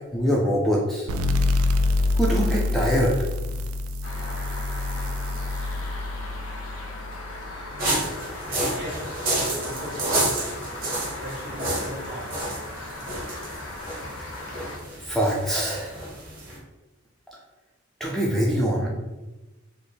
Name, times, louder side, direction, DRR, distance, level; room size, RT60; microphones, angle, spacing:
voice 1, 0.1-1.1 2.1-3.2 7.3-7.4 15.0-15.9 18.0-18.9, equal, ahead, -4 dB, 0.3 m, -24 dB
sound 1, 1.1-8.4, left 2 dB, 85° right, 0.3 m, -26 dB
sound 2, 4.0-14.8, left 2 dB, 85° left, 0.6 m, -38 dB
voice 2, 7.4-10.6 11.0-12.5, equal, 65° right, -5 dB, 1.4 m, -39 dB
sound 3, 7.8-16.6, right 1 dB, 45° right, 1.0 m, -30 dB
3.3 x 2.0 x 3.9 m, 1.1 s
head